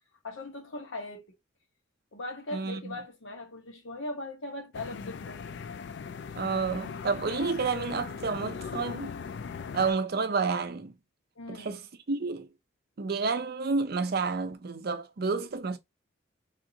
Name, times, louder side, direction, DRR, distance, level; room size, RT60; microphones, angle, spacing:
voice 1, 0.2-1.2 2.1-5.4 11.4-11.7, left 2 dB, 75° left, 1.0 m, -39 dB
voice 2, 2.5-2.9 6.4-9.1 9.7-10.9 11.5-11.8 12.1-12.5 13.0-15.8, right 4 dB, 50° right, 0.5 m, -30 dB
sound 1, 4.7-9.9, left 6 dB, 60° left, 0.3 m, -39 dB
3.5 x 2.5 x 2.8 m
head